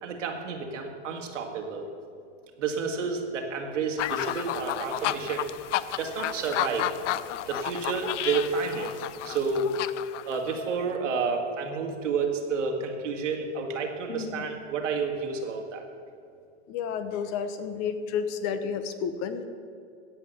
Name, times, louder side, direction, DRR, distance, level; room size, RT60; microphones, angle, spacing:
voice 1, 0.0-1.9 2.6-5.5 6.0-6.9 7.5-8.9 9.2-9.7 10.3-15.8, right 5 dB, 90° right, 2 dB, 2.0 m, -30 dB
sound 1, 4.0-10.8, left 13 dB, 80° left, 0.6 m, -32 dB
voice 2, 14.1-14.4 16.7-19.5, left 7 dB, 45° left, 10 dB, 1.1 m, -31 dB
16.0 x 5.9 x 6.8 m, 2.4 s
hypercardioid pair, 120°, 36 cm